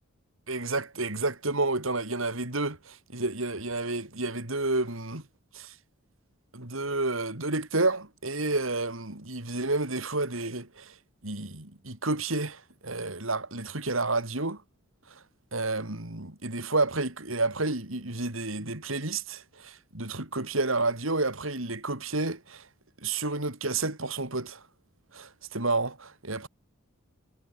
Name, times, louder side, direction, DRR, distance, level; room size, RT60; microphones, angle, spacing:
voice 1, 0.5-5.2 5.5-5.7 6.5-10.9 11.2-14.6 15.5-22.7 23.0-24.6 25.1-26.5, right 2 dB, 80° right, 4.3 m, -30 dB
head